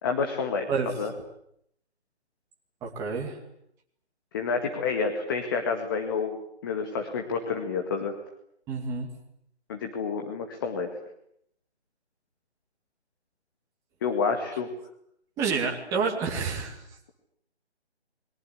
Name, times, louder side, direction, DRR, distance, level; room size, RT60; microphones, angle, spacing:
voice 1, 0.0-1.1 4.3-6.4 6.6-8.1 9.7-10.9 14.0-14.7, left 5 dB, 20° left, 5 dB, 2.0 m, -29 dB
voice 2, 2.8-3.4 8.7-9.1 15.4-16.8, right 5 dB, 10° right, 0 dB, 2.4 m, -29 dB
29.0 x 22.5 x 8.4 m, 0.73 s
figure-of-eight pair, 155°, 34 cm